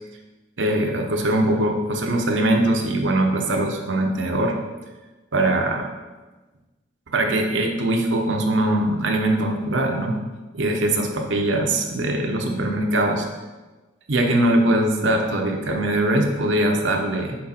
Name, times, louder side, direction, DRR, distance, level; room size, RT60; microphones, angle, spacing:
voice 1, 0.6-4.5 5.3-5.9 7.1-10.2 10.5-13.3 14.1-17.4, right 1 dB, 75° right, 2 dB, 0.8 m, -21 dB
6.3 x 4.1 x 4.3 m, 1.2 s
head